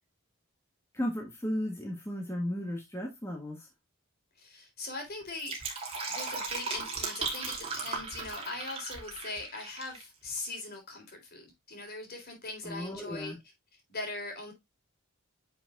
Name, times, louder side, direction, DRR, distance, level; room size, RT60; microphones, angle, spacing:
voice 1, 0.9-3.7 12.6-13.4, left 1 dB, 10° left, 1.5 m, -35 dB
voice 2, 4.4-5.6 6.1-13.3 13.9-14.5, left 2 dB, 50° left, 3.7 m, -40 dB
Fill (with liquid), 5.2-10.0 10.3-10.4, right 4 dB, 30° right, 2.9 m, -37 dB
9.9 x 6.0 x 2.4 m
head